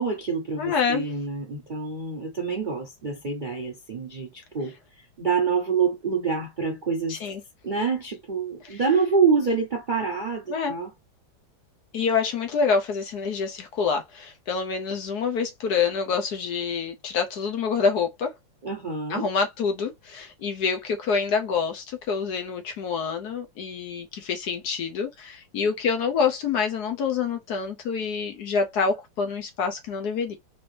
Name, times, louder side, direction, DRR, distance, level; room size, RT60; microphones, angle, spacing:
voice 1, 0.0-7.2 7.6-10.9 18.6-19.3, right 5 dB, 75° right, 0.4 m, -26 dB
voice 2, 0.6-1.1 7.1-7.4 8.6-8.8 10.5-10.7 11.9-18.3 19.1-30.4, left 5 dB, 65° left, 1.1 m, -27 dB
4.3 x 2.7 x 3.1 m
omnidirectional pair, 2.1 m